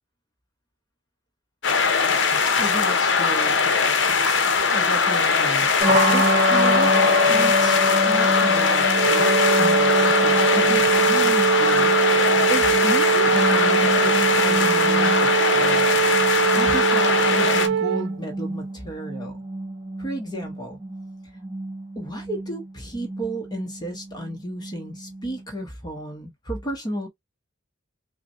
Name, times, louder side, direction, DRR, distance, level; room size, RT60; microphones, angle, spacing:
sound 1, 1.6-17.7, left 5 dB, 60° left, 0.8 m, -21 dB
voice 1, 2.6-3.6 4.6-5.7 6.1-6.9 7.3-11.9 12.5-15.8 16.5-19.4 20.0-20.8 22.0-27.1, right 1 dB, 20° left, 0.9 m, -33 dB
sound 2, 5.8-25.6, left 1 dB, 30° right, 1.1 m, -26 dB
Wind instrument woodwind instrument, 8.9-18.1, right 8 dB, 60° right, 0.3 m, -22 dB
5.7 x 2.1 x 2.5 m
head